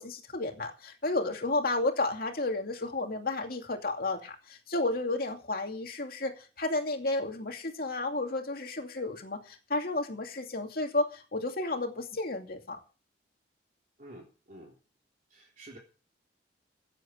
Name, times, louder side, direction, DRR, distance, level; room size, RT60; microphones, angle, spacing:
voice 1, 0.0-12.8, left 2 dB, 55° left, 3 dB, 2.6 m, -32 dB
voice 2, 14.0-14.7 15.3-15.8, right 1 dB, 45° right, -2 dB, 3.6 m, -49 dB
16.0 x 8.0 x 6.3 m, 0.36 s
head